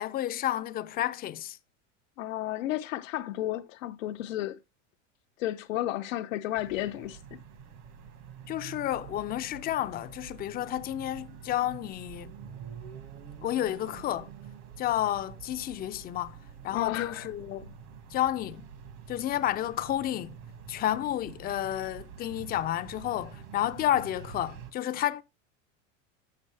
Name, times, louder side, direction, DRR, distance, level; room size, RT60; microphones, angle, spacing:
voice 1, 0.0-1.6 8.5-12.3 13.4-14.3 14.8-16.4 16.6-17.7 18.1-18.7 19.1-20.4 20.7-25.2, left 12 dB, 25° left, 0.4 m, -31 dB
voice 2, 2.2-4.6 5.4-7.4 16.7-17.3, left 14 dB, 90° left, 0.5 m, -32 dB
sound 1, 6.6-24.7, right 7 dB, 60° right, 1.4 m, -47 dB
6.6 x 6.2 x 3.2 m
supercardioid pair, 115°, 38 cm